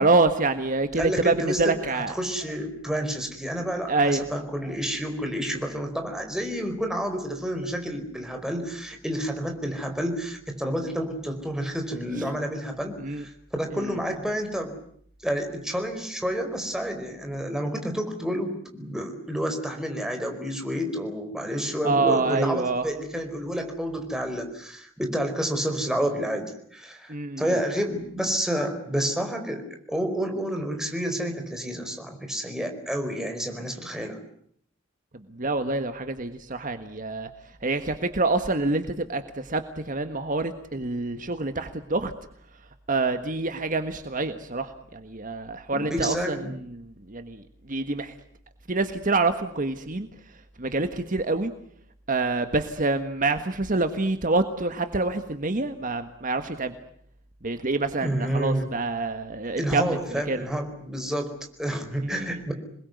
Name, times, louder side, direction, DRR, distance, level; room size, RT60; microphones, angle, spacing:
voice 1, 0.0-2.1 3.9-4.2 13.0-13.2 13.7-14.0 21.8-22.9 27.1-27.4 35.4-37.3 37.6-42.1 42.9-46.8 47.1-48.1 48.7-50.1 50.6-51.5 52.1-56.7 57.4-60.4 62.0-62.3, right 3 dB, 45° right, 9 dB, 1.5 m, -26 dB
voice 2, 1.0-14.8 15.2-34.2 45.7-46.6 58.0-58.7 59.6-61.3 61.6-62.5, equal, 5° right, 4 dB, 4.7 m, -29 dB
27.5 x 21.0 x 9.4 m, 0.66 s
head